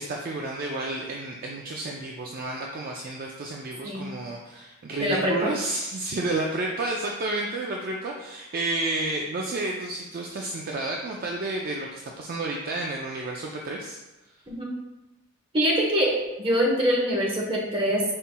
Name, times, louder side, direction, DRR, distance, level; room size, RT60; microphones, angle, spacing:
voice 1, 0.0-14.0, right 2 dB, 45° right, 0 dB, 0.4 m, -31 dB
voice 2, 5.0-5.5 14.5-14.7 15.5-18.0, equal, 25° right, -3 dB, 0.9 m, -24 dB
5.5 x 4.1 x 2.2 m, 1.0 s
head